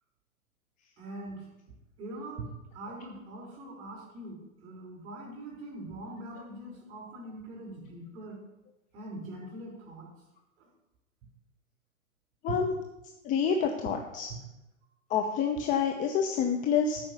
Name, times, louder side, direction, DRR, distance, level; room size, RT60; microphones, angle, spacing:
voice 1, 1.0-1.5 2.0-2.5 2.7-8.4 8.9-10.1 10.6-10.7 12.5-12.6 14.3-14.4, right 2 dB, 35° right, -3 dB, 4.6 m, -42 dB
voice 2, 13.2-14.3 15.1-17.0, left 7 dB, 20° left, 3 dB, 0.8 m, -27 dB
13.0 x 5.4 x 6.7 m, 0.96 s
figure-of-eight pair, 105°, 42 cm